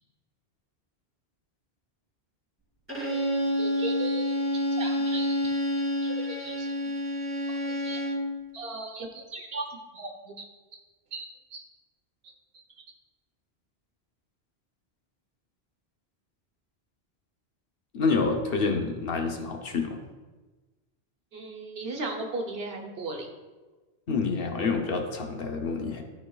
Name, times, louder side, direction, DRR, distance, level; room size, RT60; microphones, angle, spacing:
Bowed string instrument, 2.9-8.3, equal, 10° right, 2.2 m, -28 dB
voice 1, 3.1-5.5 6.0-6.7 7.7-8.0 8.5-9.6 9.9-10.3 11.1-11.6 21.3-23.3, right 2 dB, 70° right, 2 dB, 1.2 m, -37 dB
voice 2, 17.9-20.0 24.1-26.0, left 4 dB, 65° left, 3 dB, 1.0 m, -27 dB
12.5 x 4.5 x 2.3 m, 1.2 s
omnidirectional pair, 1.1 m